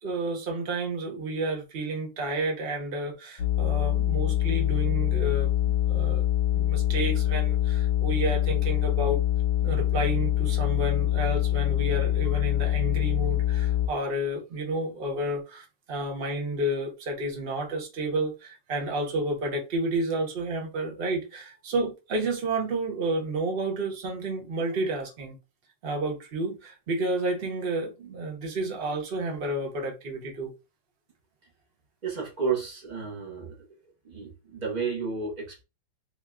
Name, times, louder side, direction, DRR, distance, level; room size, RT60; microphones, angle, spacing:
voice 1, 0.0-6.2 6.5-9.2 9.6-25.4 25.8-30.5, right 2 dB, 40° right, 0.9 m, -31 dB
sound 1, 3.4-13.9, left 13 dB, 70° left, 1.3 m, -25 dB
voice 2, 32.0-33.7 34.0-35.6, right 5 dB, 65° right, 0.4 m, -32 dB
3.5 x 2.2 x 3.6 m
omnidirectional pair, 2.1 m